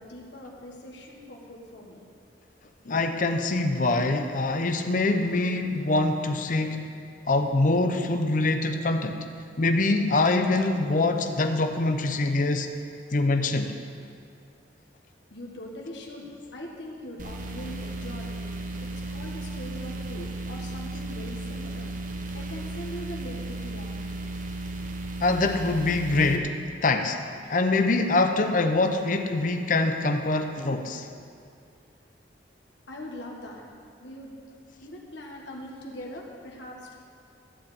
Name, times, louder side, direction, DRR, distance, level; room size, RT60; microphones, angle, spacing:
voice 1, 0.0-2.0 15.3-18.4 18.8-21.9 22.3-24.0 32.9-33.7 34.0-34.4 34.8-36.9, left 1 dB, 80° left, -1 dB, 1.6 m, -41 dB
voice 2, 2.8-6.9 7.3-9.3 9.6-12.7 13.1-13.8 25.2-27.2 27.5-31.1, left 2 dB, 45° left, 6 dB, 0.7 m, -24 dB
sound 1, 17.2-26.4, right 2 dB, 45° right, 0.8 m, -35 dB
13.5 x 4.9 x 8.6 m, 2.4 s
head